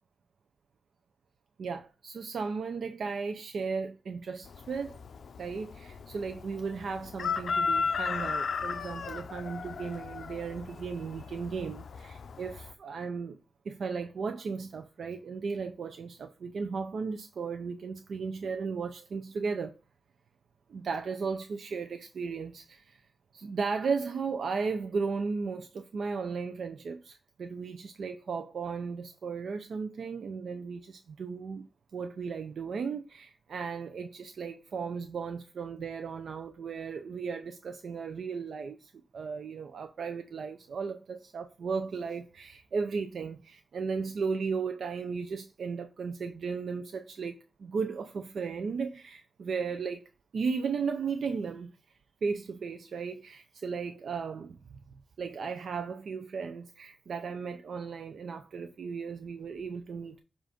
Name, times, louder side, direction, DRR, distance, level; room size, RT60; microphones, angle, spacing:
voice 1, 1.6-5.0 5.4-13.4 13.7-19.8 20.7-23.0 23.3-31.7 31.9-50.1 50.3-51.7 52.2-54.6 55.2-60.2, right 5 dB, 85° right, 0.5 m, -35 dB
Chicken rooster, 4.4-12.7, left 5 dB, 75° left, 0.4 m, -35 dB
7.4 x 2.5 x 5.1 m
wide cardioid pair, 115°, 0 cm